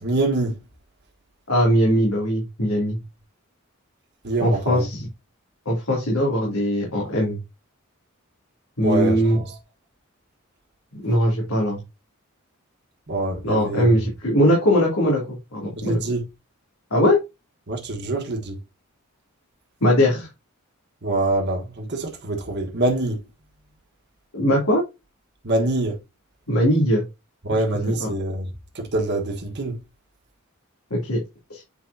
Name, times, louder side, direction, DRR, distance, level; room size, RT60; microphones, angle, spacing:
voice 1, 0.0-0.5 4.2-4.9 8.8-9.5 13.1-13.9 15.8-16.2 17.7-18.6 21.0-23.2 25.4-26.0 27.4-28.5 28.7-29.7, right 2 dB, 55° right, 1.5 m, -25 dB
voice 2, 1.5-3.0 4.4-5.1 5.6-7.4 8.8-9.4 11.0-11.8 13.4-16.0 16.9-17.2 19.8-20.3 24.3-24.8 26.5-27.0 27.5-27.6 28.0-28.1 30.9-31.2 31.5-31.6, equal, 85° left, 2.9 m, -20 dB
8.5 x 4.7 x 2.8 m
head